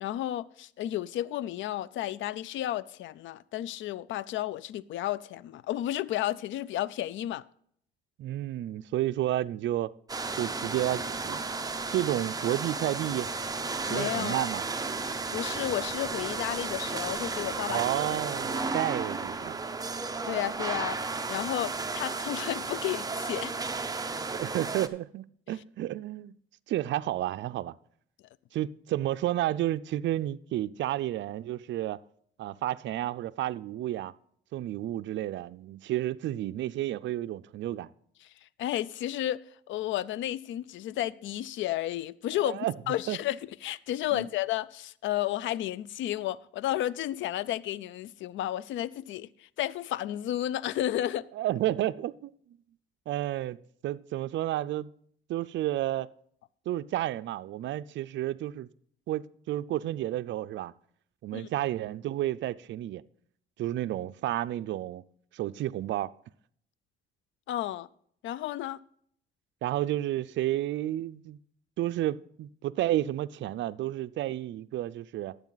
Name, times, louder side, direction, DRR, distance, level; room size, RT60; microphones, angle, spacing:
voice 1, 0.0-7.4 13.9-14.5 15.0-17.8 20.3-21.0 21.3-23.5 38.6-39.4 39.7-51.2 61.3-61.5 67.5-67.9 68.2-68.8, left 13 dB, 75° left, 0.4 m, -32 dB
voice 2, 8.2-9.9 10.4-11.4 11.9-13.3 13.9-14.7 17.7-19.6 24.3-26.3 26.7-27.7 28.5-32.0 32.4-34.1 34.5-37.9 42.4-42.7 43.1-43.2 44.1-44.3 51.3-52.3 53.1-53.6 53.8-54.9 55.3-56.1 56.7-58.7 59.1-60.7 61.2-63.0 63.6-65.0 65.3-66.1 69.6-71.4 71.8-75.4, right 13 dB, 70° right, 0.4 m, -31 dB
sound 1, 10.1-24.9, right 4 dB, 20° right, 0.7 m, -33 dB
12.0 x 8.1 x 4.0 m
cardioid pair, 90°, 20 cm